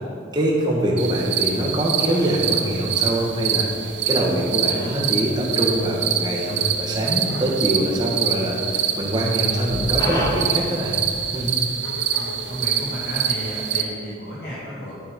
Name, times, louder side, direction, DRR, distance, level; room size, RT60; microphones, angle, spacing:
voice 1, 0.3-11.0 11.3-11.6, right 1 dB, 20° right, -3 dB, 1.7 m, -23 dB
sound 1, 1.0-13.8, right 8 dB, 75° right, 0.8 m, -25 dB
Fowl, 1.5-13.5, equal, 20° left, 2.1 m, -40 dB
sound 2, 9.7-10.4 11.0-11.9, equal, 5° left, 1.7 m, -34 dB
voice 2, 12.1-14.9, equal, 60° left, -8 dB, 2.0 m, -32 dB
11.5 x 7.7 x 5.4 m, 2.5 s
head